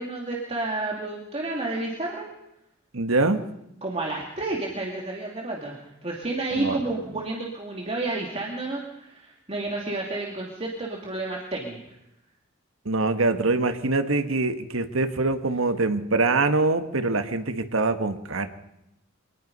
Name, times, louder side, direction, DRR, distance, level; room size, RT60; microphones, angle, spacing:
voice 1, 0.0-2.3 3.8-11.8, right 2 dB, 30° right, -1 dB, 2.7 m, -31 dB
voice 2, 2.9-3.5 6.5-6.8 12.8-18.5, right 3 dB, 80° right, 8 dB, 1.6 m, -24 dB
25.0 x 19.5 x 5.5 m, 0.86 s
head